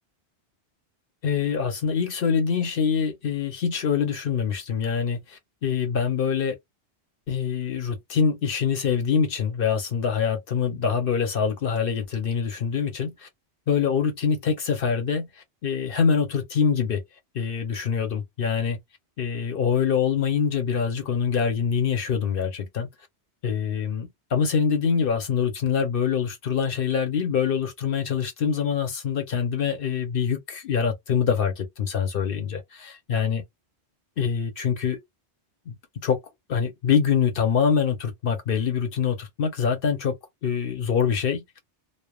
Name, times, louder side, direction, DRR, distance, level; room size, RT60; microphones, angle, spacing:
voice 1, 1.2-6.6 7.3-13.3 13.7-17.0 17.3-18.8 19.2-22.9 23.4-33.4 34.2-35.0 35.7-35.8 36.0-36.2 36.5-40.2 40.4-41.4, left 6 dB, 60° left, 0.8 m, -25 dB
3.0 x 2.0 x 2.3 m
omnidirectional pair, 1.1 m